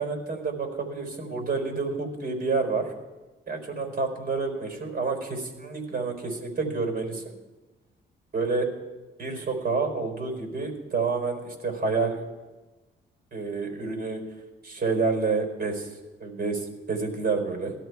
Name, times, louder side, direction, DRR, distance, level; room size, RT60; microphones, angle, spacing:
voice 1, 0.0-2.9 3.5-7.4 8.3-8.7 9.2-12.3 13.3-14.3 14.6-15.9 16.2-17.7, right 4 dB, 55° right, 4 dB, 4.4 m, -29 dB
17.5 x 13.0 x 4.7 m, 1.2 s
cardioid pair, 90°, 20 cm